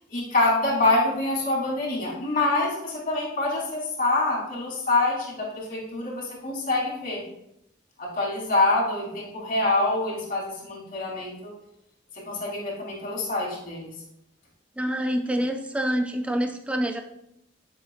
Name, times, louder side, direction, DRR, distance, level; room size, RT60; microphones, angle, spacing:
voice 1, 0.1-7.2 8.0-11.5 12.2-13.9, left 2 dB, 45° left, -4 dB, 3.0 m, -26 dB
voice 2, 14.8-17.0, equal, 5° right, 5 dB, 0.3 m, -26 dB
12.0 x 7.1 x 2.3 m, 0.81 s
head